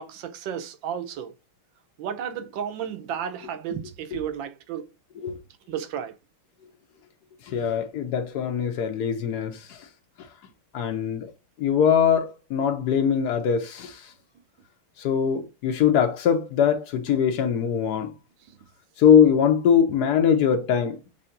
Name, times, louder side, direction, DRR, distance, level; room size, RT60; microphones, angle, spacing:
voice 1, 0.0-1.3 2.0-4.9 5.7-6.1, right 8 dB, 70° right, 1.4 m, -33 dB
voice 2, 7.5-9.9 10.7-11.3 11.6-14.1 15.0-18.1 19.0-21.0, left 8 dB, 70° left, 1.0 m, -22 dB
6.8 x 2.8 x 2.5 m
omnidirectional pair, 2.3 m